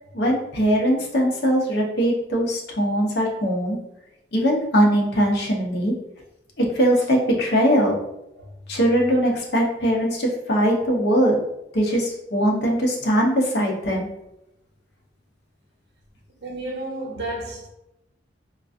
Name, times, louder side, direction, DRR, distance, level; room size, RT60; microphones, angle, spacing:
voice 1, 0.1-3.8 4.3-5.9 6.6-7.9 8.7-11.4 11.7-14.1, equal, 60° left, 0.7 m, -21 dB
voice 2, 16.4-17.7, right 1 dB, 60° right, 0.9 m, -32 dB
3.8 x 2.4 x 2.5 m
head